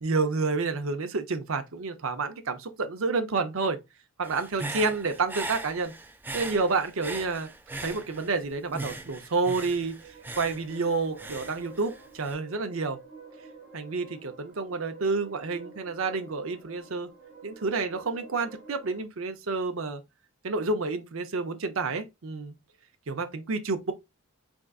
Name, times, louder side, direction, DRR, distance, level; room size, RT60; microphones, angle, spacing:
voice 1, 0.0-3.8 4.2-5.9 6.3-7.5 7.8-10.0 10.4-13.0 13.7-17.1 17.4-20.0 20.4-22.5 23.1-23.9, right 4 dB, 65° right, 0.6 m, -29 dB
Human voice / Breathing, 4.2-8.4 8.7-12.3, right 2 dB, 10° right, 0.3 m, -39 dB
sound 1, 9.7-19.0, right 4 dB, 30° right, 2.2 m, -49 dB
3.8 x 3.5 x 2.3 m
head